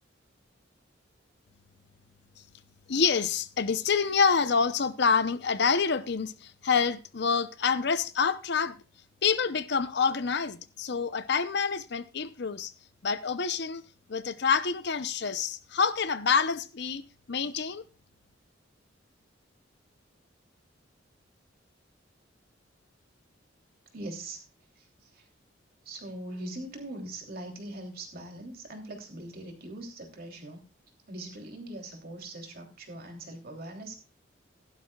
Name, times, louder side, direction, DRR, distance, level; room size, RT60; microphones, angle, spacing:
voice 1, 2.9-8.8 9.2-12.7 13.0-13.8 14.1-17.0 17.3-17.8, left 5 dB, 60° left, 0.7 m, -27 dB
voice 2, 23.9-24.4 24.8-25.2 25.8-30.6 31.1-34.0, right 1 dB, 50° right, 3.1 m, -41 dB
15.5 x 12.0 x 2.3 m
head